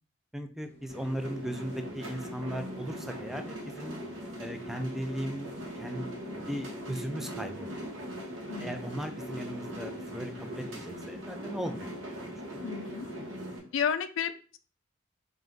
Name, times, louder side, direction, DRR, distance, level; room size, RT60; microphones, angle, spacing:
voice 1, 0.3-4.0 4.4-5.5 5.8-6.1 6.5-7.9 8.6-12.7, equal, ahead, 6 dB, 0.4 m, -37 dB
sound 1, 0.6-13.2, right 1 dB, 35° left, 0.8 m, -57 dB
sound 2, 0.9-13.6, equal, 75° right, 1.0 m, -40 dB
sound 3, 1.5-13.7, left 1 dB, 50° right, 1.2 m, -54 dB
voice 2, 8.5-8.8 12.6-13.1 13.7-14.6, left 7 dB, 85° left, 11 dB, 0.4 m, -32 dB
3.4 x 2.5 x 3.8 m, 0.37 s
head